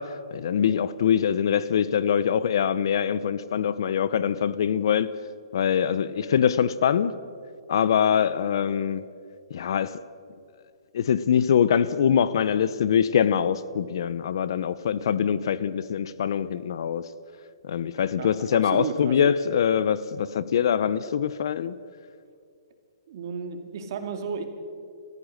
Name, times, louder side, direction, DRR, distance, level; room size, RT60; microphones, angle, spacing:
voice 1, 0.0-5.1 5.5-7.1 7.7-9.1 9.5-10.0 10.9-17.0 17.6-21.7, left 8 dB, 50° left, 0.7 m, -23 dB
voice 2, 18.6-19.3 23.1-24.4, right 6 dB, 40° right, 2.4 m, -33 dB
28.0 x 15.0 x 6.5 m
hypercardioid pair, 170°, 3 cm